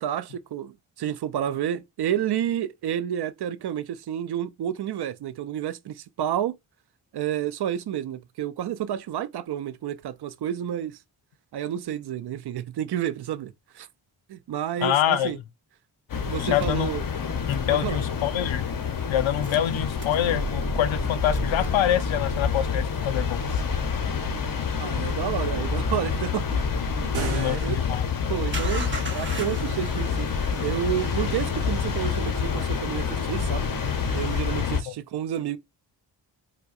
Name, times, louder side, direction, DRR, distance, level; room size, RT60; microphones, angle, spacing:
voice 1, 0.0-6.6 7.1-11.0 11.5-13.9 14.3-15.4 16.3-17.0 17.7-18.0 24.8-26.7 27.0-27.8 28.3-30.3 30.6-33.7 34.1-35.6, right 10 dB, 60° right, 0.5 m, -30 dB
voice 2, 14.8-15.3 16.4-17.0 17.5-18.7 19.1-23.6 27.3-28.1 34.9-35.0, left 11 dB, 80° left, 0.5 m, -26 dB
sound 1, 16.1-34.8, left 6 dB, 45° left, 0.7 m, -28 dB
sound 2, 16.6-18.3 19.3-27.5 28.5-34.4, right 2 dB, 25° right, 0.8 m, -38 dB
sound 3, 27.0-28.3, right 5 dB, 90° right, 0.8 m, -34 dB
4.5 x 2.1 x 2.4 m
cardioid pair, 45°, 47 cm